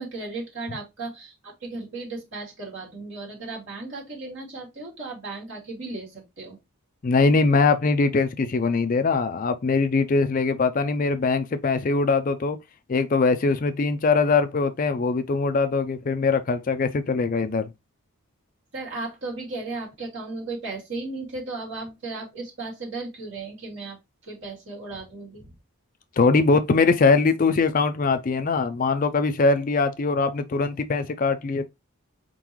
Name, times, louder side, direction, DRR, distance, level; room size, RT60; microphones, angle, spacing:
voice 1, 0.0-6.6 18.7-24.0 24.2-25.5, right 3 dB, 55° right, 2.6 m, -35 dB
voice 2, 7.0-12.6 12.9-17.7 26.2-31.7, left 4 dB, 35° left, 0.4 m, -22 dB
4.4 x 3.8 x 3.0 m
head